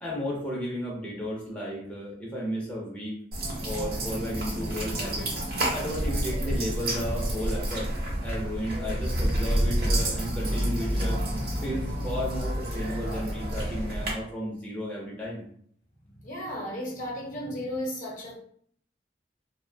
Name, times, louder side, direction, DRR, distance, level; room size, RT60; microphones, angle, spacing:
voice 1, 0.0-3.2 3.6-5.3 5.7-7.9 8.2-11.2 11.6-15.4, equal, 10° left, -5 dB, 0.5 m, -33 dB
sound 1, 3.3-14.1, right 1 dB, 55° right, 0.8 m, -29 dB
voice 2, 16.2-18.3, equal, 50° left, -2 dB, 0.7 m, -34 dB
2.5 x 2.1 x 2.6 m, 0.62 s
head